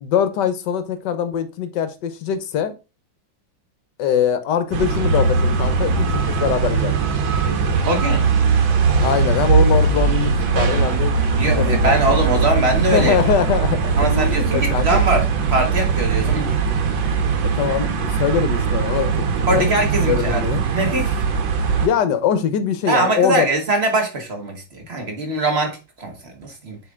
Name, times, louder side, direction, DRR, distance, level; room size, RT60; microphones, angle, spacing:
voice 1, 0.0-2.7 4.0-7.1 9.0-12.5 12.9-15.0 17.4-19.7 20.0-20.6 21.8-23.5, left 8 dB, 70° left, 1.4 m, -22 dB
sound 1, 4.7-21.9, right 5 dB, 80° right, 1.8 m, -20 dB
voice 2, 7.8-8.3 11.4-13.2 14.0-15.2 15.5-16.5 19.5-21.2 22.9-26.8, right 2 dB, 35° right, 1.6 m, -22 dB
7.5 x 3.9 x 3.6 m
omnidirectional pair, 2.1 m